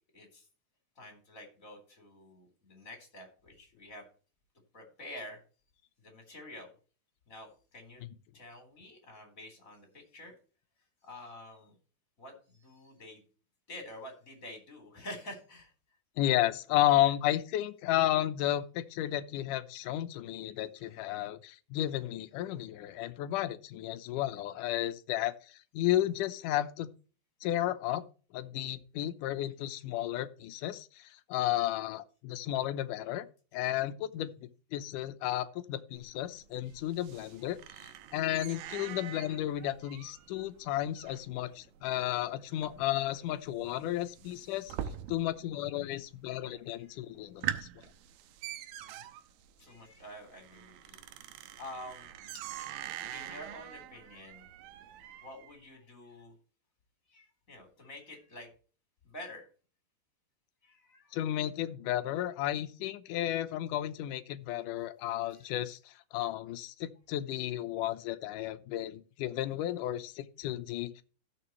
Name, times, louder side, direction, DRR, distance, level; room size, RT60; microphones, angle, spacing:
voice 1, 0.1-0.5 1.0-4.1 4.7-5.4 6.0-6.7 7.3-8.0 8.3-10.3 11.0-11.8 12.2-13.2 13.7-15.7 16.9-17.1 20.8-21.0 36.6-36.8 46.8-47.0 48.8-49.1 49.6-52.1 53.1-54.5 55.1-56.3 57.1-58.5 59.0-59.5 60.6-61.2 65.3-65.5, left 1 dB, 20° left, 4 dB, 3.8 m, -48 dB
voice 2, 16.2-26.9 27.4-28.0 28.3-33.3 33.5-37.6 38.1-44.8 45.1-47.7 61.1-71.0, left 13 dB, 75° left, 11 dB, 2.0 m, -33 dB
sound 1, 36.0-45.5 45.8-46.4 46.8-46.9 47.2-55.5, right 11 dB, 80° right, 2.5 m, -44 dB
15.5 x 6.9 x 3.0 m, 0.38 s
omnidirectional pair, 4.3 m